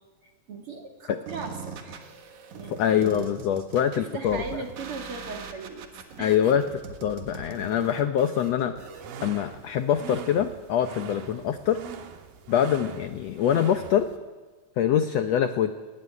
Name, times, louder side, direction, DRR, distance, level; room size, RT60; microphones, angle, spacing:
voice 1, 0.2-2.1 2.5-2.8 4.0-5.9 6.2-6.3, right 4 dB, 45° right, 3 dB, 2.6 m, -38 dB
sound 1, 1.3-9.3, right 5 dB, 65° right, 2.8 m, -42 dB
voice 2, 2.7-4.4 6.2-6.6 7.0-8.7 9.2-11.8 12.5-14.1 14.8-15.7, left 9 dB, 75° left, 9 dB, 1.5 m, -24 dB
sound 2, 8.8-14.2, right 7 dB, 85° right, 3.1 m, -42 dB
19.5 x 14.5 x 9.8 m, 1.4 s
omnidirectional pair, 3.9 m